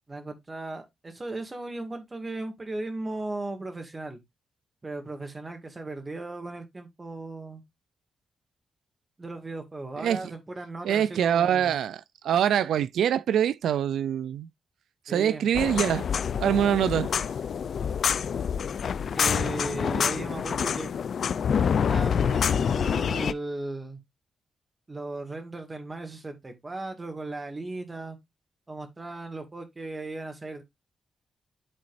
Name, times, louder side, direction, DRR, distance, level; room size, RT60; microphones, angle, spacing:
voice 1, 0.1-4.2 4.8-7.6 9.2-11.7 15.1-15.5 19.1-21.0 21.5-24.0 24.9-28.2 28.7-30.6, right 2 dB, 25° right, 2.0 m, -37 dB
voice 2, 10.0-10.3 10.8-14.5 15.1-16.1 16.4-17.1, right 9 dB, 90° right, 0.4 m, -24 dB
sound 1, 15.5-23.3, left 7 dB, 65° left, 0.5 m, -27 dB
11.5 x 4.0 x 2.6 m
cardioid pair, 95°, 0 cm